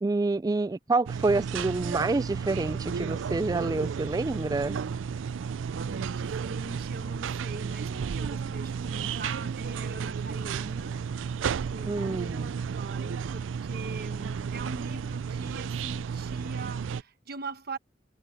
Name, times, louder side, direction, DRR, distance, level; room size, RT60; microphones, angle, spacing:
voice 1, 0.0-4.8 11.8-12.5, right 3 dB, 20° right, 0.3 m, -28 dB
sound 1, 1.1-17.0, right 6 dB, 90° right, 0.4 m, -33 dB
voice 2, 5.7-11.0 11.7-12.3 12.8-17.8, right 3 dB, 55° right, 1.1 m, -42 dB
head